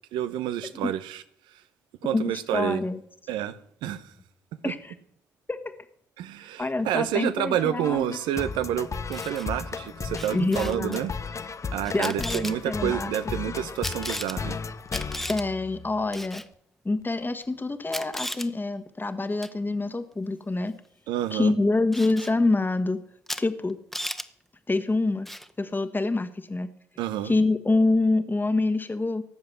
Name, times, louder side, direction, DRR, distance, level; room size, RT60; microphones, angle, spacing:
voice 1, 0.1-1.2 2.0-2.8 3.3-3.5 3.8-4.1 6.2-11.1 11.4-14.6 21.1-21.5 27.0-27.3, right 11 dB, 80° right, 0.9 m, -29 dB
voice 2, 2.1-3.0 4.6-4.9 5.5-5.8 6.6-8.2 10.3-11.0 11.9-13.1 15.3-16.4 16.8-20.7 21.3-23.0 23.4-23.8 24.7-25.3 25.6-26.7 27.2-29.2, left 2 dB, 25° left, 1.5 m, -26 dB
sound 1, 7.6-16.2, left 5 dB, 40° left, 0.8 m, -35 dB
Camera, 8.9-9.5 10.1-11.0 11.8-12.5 13.8-14.4 14.9-15.4 16.1-16.5 17.4-17.5 17.9-18.5 19.4-19.6 21.9-22.3 23.3-23.4 23.7-24.3 25.3-25.5, equal, 5° left, 1.4 m, -35 dB
18.0 x 7.2 x 7.9 m
hypercardioid pair, 45°, 8 cm